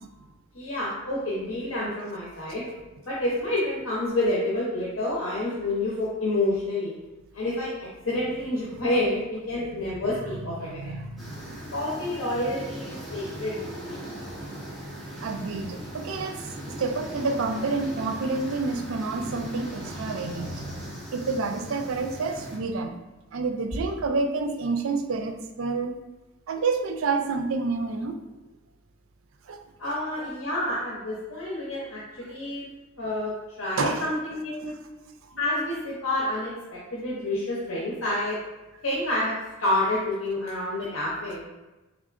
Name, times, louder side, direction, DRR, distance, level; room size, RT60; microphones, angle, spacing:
voice 1, 0.5-2.6 3.0-6.9 7.3-7.7 8.0-10.9 11.7-14.0 29.8-32.7 33.0-34.7 35.4-38.4 38.8-41.5, left 1 dB, 80° left, -6 dB, 0.8 m, -28 dB
voice 2, 10.6-11.6 15.2-16.4 16.8-20.8 21.1-22.9 23.3-25.9 26.5-28.2 29.5-29.6 33.8-34.0 34.6-34.7, right 3 dB, 80° right, 7 dB, 0.4 m, -29 dB
sound 1, 11.2-22.6, right 1 dB, ahead, 1.3 m, -39 dB
3.7 x 3.5 x 2.5 m, 1.1 s
head